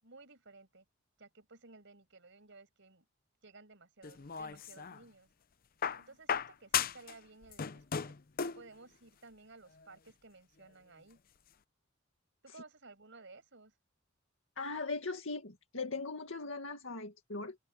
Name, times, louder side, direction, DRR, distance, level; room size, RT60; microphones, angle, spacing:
voice 1, 0.0-0.8 1.2-3.0 3.4-5.3 5.9-8.2 8.5-11.2 12.4-13.7, right 3 dB, 65° right, 6.3 m, -56 dB
sound 1, 4.0-5.0 5.8-7.2 7.4-8.7 9.8-9.9, left 7 dB, 45° left, 0.7 m, -36 dB
voice 2, 14.6-17.6, left 3 dB, 70° left, 2.2 m, -39 dB
open air
head